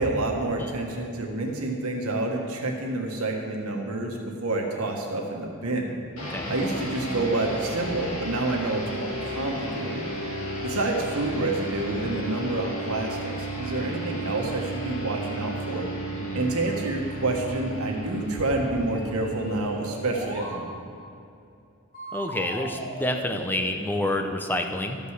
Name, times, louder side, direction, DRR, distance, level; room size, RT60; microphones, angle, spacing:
voice 1, 0.0-5.9 6.5-10.1 10.6-15.9 16.3-20.6, right 2 dB, 80° right, 1 dB, 1.6 m, -28 dB
sound 1, 6.2-21.0, right 1 dB, 70° left, 2.1 m, -34 dB
voice 2, 6.2-6.5 16.1-16.5 22.1-25.0, left 1 dB, 10° left, 4 dB, 0.6 m, -29 dB
sound 2, 18.8-20.6 21.9-24.0, right 1 dB, 40° left, 2.8 m, -38 dB
13.0 x 5.4 x 6.6 m, 2.6 s
head